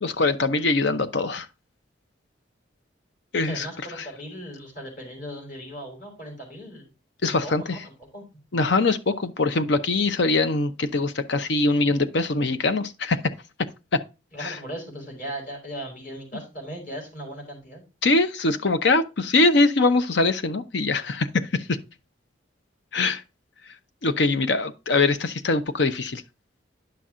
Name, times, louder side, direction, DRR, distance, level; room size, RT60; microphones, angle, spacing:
voice 1, 0.0-1.5 3.3-3.7 4.0-4.1 7.2-7.8 8.5-13.2 13.9-14.0 14.4-14.5 18.0-21.8 22.9-23.2 24.0-26.2, left 3 dB, 65° left, 0.7 m, -22 dB
voice 2, 3.3-6.9 7.4-8.2 14.3-17.8, equal, 45° left, 4.4 m, -38 dB
10.5 x 5.9 x 3.7 m
head